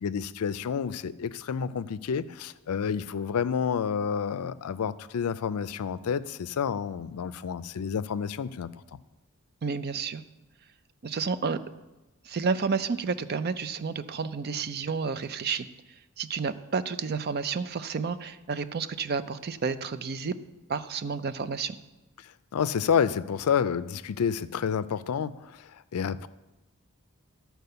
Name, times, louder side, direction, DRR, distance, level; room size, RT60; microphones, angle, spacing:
voice 1, 0.0-8.7 22.5-26.3, left 7 dB, 75° left, 15 dB, 0.4 m, -29 dB
voice 2, 9.6-10.2 11.0-11.6 12.2-15.7 16.2-20.3 20.7-21.8, right 5 dB, 45° right, 12 dB, 0.5 m, -30 dB
12.5 x 4.6 x 6.7 m, 1.1 s
head